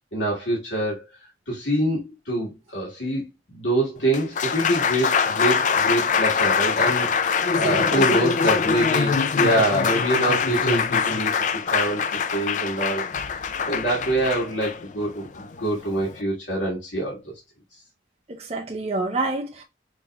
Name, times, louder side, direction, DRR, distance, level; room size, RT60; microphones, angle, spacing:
voice 1, 0.1-1.0 1.5-13.1 13.7-17.3, right 1 dB, 90° left, 1.8 m, -25 dB
Applause, 4.0-16.2, left 6 dB, 45° left, 0.3 m, -23 dB
voice 2, 18.3-19.6, right 2 dB, 35° right, 0.6 m, -28 dB
5.3 x 3.0 x 2.3 m
head